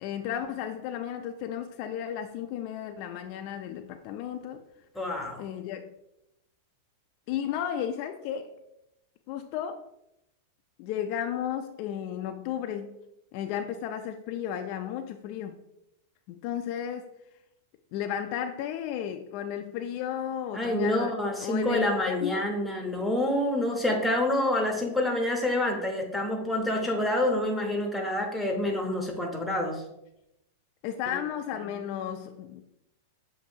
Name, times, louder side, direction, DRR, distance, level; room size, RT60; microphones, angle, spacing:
voice 1, 0.0-4.6 5.4-5.9 7.3-8.5 9.3-9.8 10.8-13.0 13.3-15.6 16.3-17.2 17.9-22.4 30.8-32.6, left 9 dB, 45° left, 6 dB, 0.3 m, -34 dB
voice 2, 5.0-5.4 20.5-29.9, left 1 dB, ahead, 0 dB, 0.7 m, -27 dB
6.8 x 2.6 x 2.7 m, 0.84 s
supercardioid pair, 150°, 0 cm